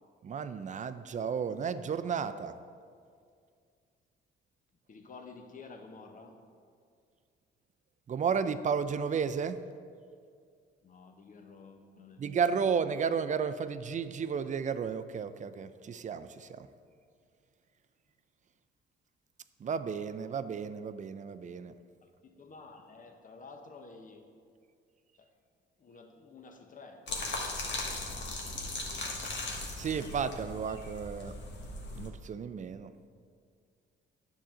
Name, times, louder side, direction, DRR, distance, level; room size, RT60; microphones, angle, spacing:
voice 1, 0.2-2.5 8.1-9.6 12.2-16.7 19.6-21.7 29.7-31.3 32.0-32.9, right 6 dB, 40° right, 12 dB, 0.4 m, -33 dB
voice 2, 4.9-6.4 10.8-12.3 22.0-24.3 25.2-25.3 25.8-27.1, left 4 dB, 40° left, 5 dB, 1.0 m, -51 dB
sound 1, 27.1-32.1, left 2 dB, 65° left, 1.5 m, -38 dB
10.0 x 7.4 x 3.8 m, 2.2 s
cardioid pair, 90°, 20 cm